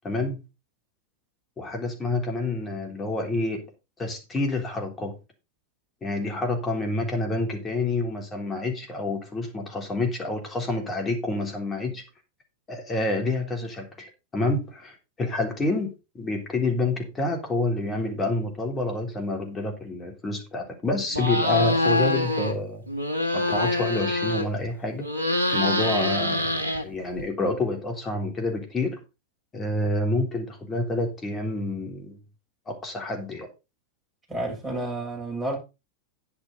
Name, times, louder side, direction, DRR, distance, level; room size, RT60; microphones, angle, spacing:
voice 1, 0.0-0.4 1.6-3.6 4.0-5.2 6.0-12.0 12.7-22.8 23.3-25.1 25.5-29.0 29.5-32.2 32.7-33.5, left 2 dB, 20° left, 3.4 m, -28 dB
sound 1, 21.1-22.5 22.9-24.7 25.0-27.2, left 1 dB, 80° right, 1.6 m, -25 dB
voice 2, 34.3-35.6, right 2 dB, 5° right, 7.0 m, -30 dB
10.0 x 8.6 x 4.0 m
figure-of-eight pair, 90°, 0 cm